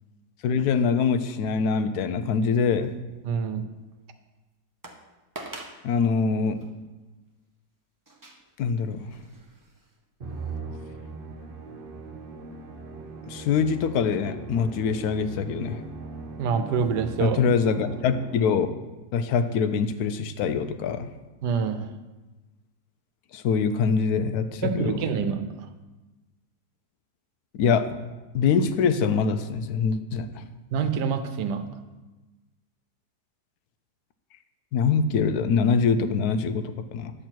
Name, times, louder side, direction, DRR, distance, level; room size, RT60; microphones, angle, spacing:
voice 1, 0.4-2.9 5.8-6.6 8.6-9.1 13.3-15.8 17.2-18.7 19.1-21.1 23.3-25.0 27.5-28.0 28.3-30.4 34.7-37.1, left 5 dB, 70° left, 11 dB, 1.1 m, -24 dB
sound 1, 2.8-3.4 3.9-4.0 4.8-5.0 5.4-5.8 6.6-6.7 8.1-10.0 10.4-10.5, right 2 dB, 20° right, 0.5 m, -44 dB
voice 2, 3.2-3.6 16.4-17.4 21.4-21.9 24.6-25.4 30.7-31.6, right 6 dB, 85° right, 9 dB, 1.3 m, -26 dB
Musical instrument, 10.2-18.7, right 4 dB, 40° right, 0.9 m, -39 dB
10.0 x 7.7 x 4.5 m, 1.2 s
omnidirectional pair, 1.7 m